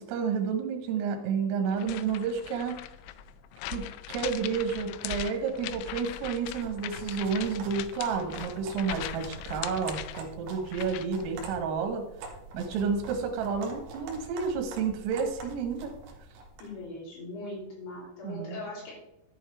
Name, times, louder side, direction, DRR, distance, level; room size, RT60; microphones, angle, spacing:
voice 1, 0.0-2.8 3.7-12.0 12.5-15.9 18.2-18.6, right 6 dB, 80° right, 4 dB, 3.8 m, -30 dB
sound 1, 1.7-11.2, left 11 dB, 90° left, 3.3 m, -40 dB
sound 2, 6.4-16.8, right 3 dB, 65° right, 3.4 m, -45 dB
voice 2, 16.6-18.9, left 2 dB, 65° left, -5 dB, 6.0 m, -40 dB
11.5 x 8.8 x 3.4 m, 0.86 s
omnidirectional pair, 5.9 m